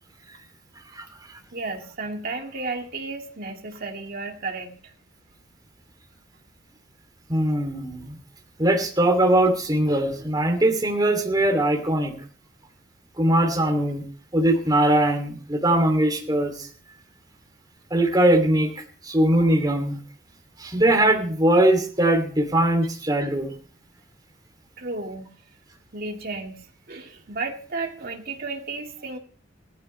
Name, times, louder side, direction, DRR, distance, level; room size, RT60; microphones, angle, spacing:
voice 1, 1.5-4.9 24.8-25.3 25.9-29.2, right 3 dB, 55° right, 2 dB, 2.2 m, -33 dB
voice 2, 7.3-8.1 8.6-12.1 13.2-14.0 14.3-16.7 17.9-18.7 19.0-20.0 20.6-23.5, right 1 dB, 20° right, 2 dB, 3.0 m, -21 dB
18.0 x 14.0 x 3.4 m, 0.42 s
head